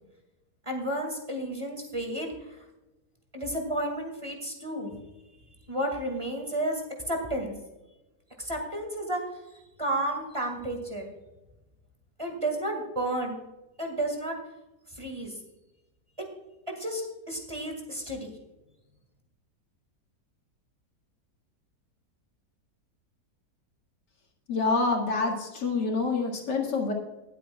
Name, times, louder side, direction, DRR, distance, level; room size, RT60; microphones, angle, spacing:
voice 1, 0.6-2.6 3.3-5.0 5.7-6.8 7.1-7.6 8.4-9.2 9.8-11.0 12.2-13.4 13.8-14.4 14.9-15.3 16.2-16.3 16.7-18.3, right 1 dB, 20° right, 2 dB, 2.0 m, -32 dB
voice 2, 24.5-26.9, left 3 dB, 90° left, 1 dB, 2.6 m, -27 dB
19.0 x 8.1 x 2.4 m, 1.0 s
omnidirectional pair, 1.8 m